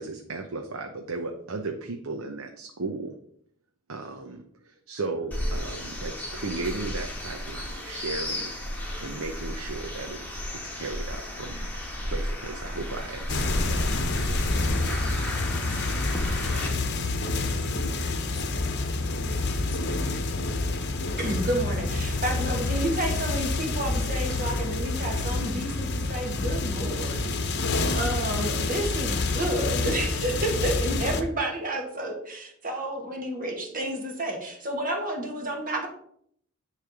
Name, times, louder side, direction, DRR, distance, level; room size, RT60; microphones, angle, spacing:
voice 1, 0.0-3.1 3.9-10.4 10.7-11.7 12.0-14.0, right 3 dB, 65° right, 0.8 m, -36 dB
sound 1, 5.3-16.7, left 1 dB, 5° left, 1.6 m, -33 dB
sound 2, 13.3-31.2, left 3 dB, 50° left, 0.9 m, -28 dB
voice 2, 15.5-16.2 19.6-20.0, left 2 dB, 25° left, 1.4 m, -47 dB
voice 3, 21.2-27.2 27.7-35.9, right 1 dB, 40° right, 1.7 m, -30 dB
10.0 x 3.4 x 6.9 m
head